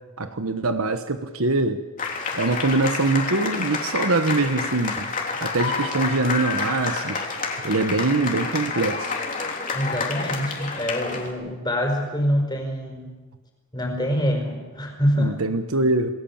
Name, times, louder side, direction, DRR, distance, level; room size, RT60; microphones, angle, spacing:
voice 1, 0.2-1.8 2.3-5.1 5.4-7.3 7.6-9.1 15.2-16.1, right 3 dB, 90° right, 8 dB, 1.3 m, -23 dB
sound 1, 2.0-11.3, left 4 dB, 40° left, 3.4 m, -29 dB
voice 2, 9.7-13.1 13.7-15.4, equal, 20° left, 3 dB, 5.1 m, -25 dB
28.0 x 19.5 x 7.4 m, 1.3 s
head